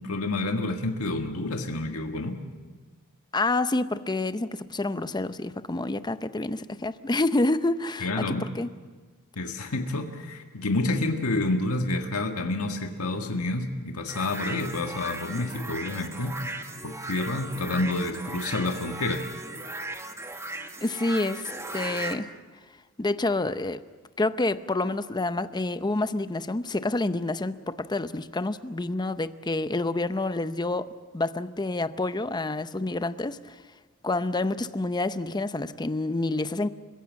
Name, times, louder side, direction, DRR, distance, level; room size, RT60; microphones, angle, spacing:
voice 1, 0.0-2.4 8.0-8.4 9.4-16.4 16.8-19.2, left 2 dB, 75° left, 1.7 m, -29 dB
voice 2, 3.3-8.7 20.8-21.5 21.7-22.3 23.0-23.8 24.2-30.9 31.1-33.6 34.0-36.7, left 2 dB, 20° left, 0.7 m, -28 dB
sound 1, 14.1-22.2, right 2 dB, 15° right, 1.4 m, -37 dB
30.0 x 16.0 x 7.5 m
head